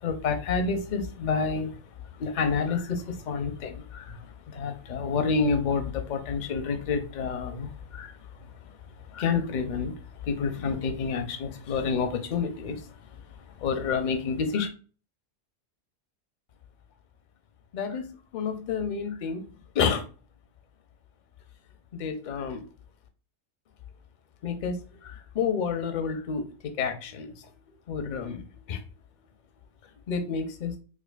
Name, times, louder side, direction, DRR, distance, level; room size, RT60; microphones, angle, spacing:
voice 1, 0.0-1.8 2.2-8.1 9.1-9.9 10.2-12.9 13.6-14.7 17.7-18.0 18.3-19.4 19.7-20.0 22.0-22.6 24.4-26.4 26.8-27.3 27.9-28.4 28.7-28.8 30.1-30.7, left 5 dB, 50° left, 0.6 m, -29 dB
4.9 x 2.2 x 2.3 m
omnidirectional pair, 1.3 m